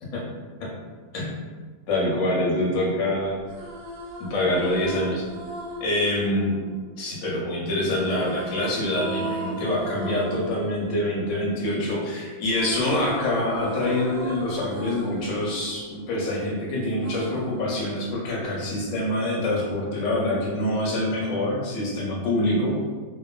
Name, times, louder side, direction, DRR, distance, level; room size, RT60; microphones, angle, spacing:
voice 1, 1.9-3.4 4.2-5.2 5.8-6.6 7.0-22.8, left 1 dB, 65° left, -4 dB, 0.8 m, -25 dB
sound 1, 3.3-7.4 8.0-12.0 12.3-16.5 17.0-18.5, right 1 dB, 90° right, 1.3 m, -38 dB
2.9 x 2.1 x 2.3 m, 1.4 s
omnidirectional pair, 2.0 m